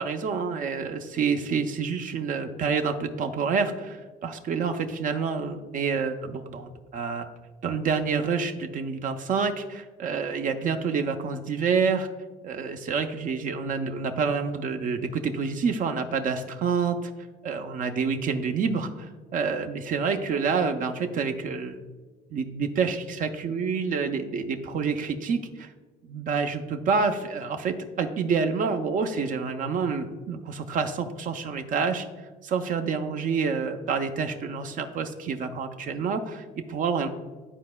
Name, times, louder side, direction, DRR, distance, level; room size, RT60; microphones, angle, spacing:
voice 1, 0.0-7.3 7.6-12.1 12.4-17.1 17.4-21.8 22.3-25.7 26.0-32.1 32.4-37.1, right 5 dB, 50° right, 7 dB, 0.5 m, -28 dB
12.0 x 4.1 x 2.2 m, 1.3 s
cardioid pair, 110°, 17 cm